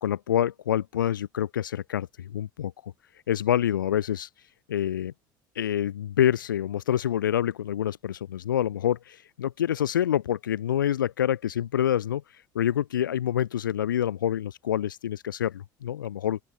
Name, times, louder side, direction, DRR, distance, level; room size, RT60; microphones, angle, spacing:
voice 1, 0.0-2.9 3.3-4.3 4.7-5.1 5.5-12.2 12.5-16.4, left 10 dB, 75° left, 1.3 m, -27 dB
open air
figure-of-eight pair, 60°, 11 cm